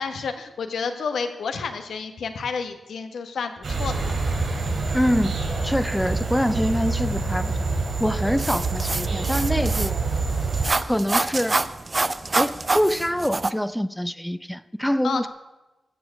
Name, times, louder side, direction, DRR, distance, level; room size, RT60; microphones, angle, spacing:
voice 1, 0.0-4.2 15.0-15.3, left 5 dB, 85° left, 7 dB, 1.4 m, -30 dB
sound 1, 3.6-10.6, right 3 dB, 60° right, 4.4 m, -26 dB
voice 2, 4.9-5.4 5.6-7.6 8.0-10.0 10.9-11.6 12.4-15.3, equal, 5° left, 15 dB, 0.6 m, -25 dB
sound 2, 8.4-13.5, right 3 dB, 35° right, 0.6 m, -26 dB
14.5 x 6.9 x 8.2 m, 1.1 s
cardioid pair, 65°, 0 cm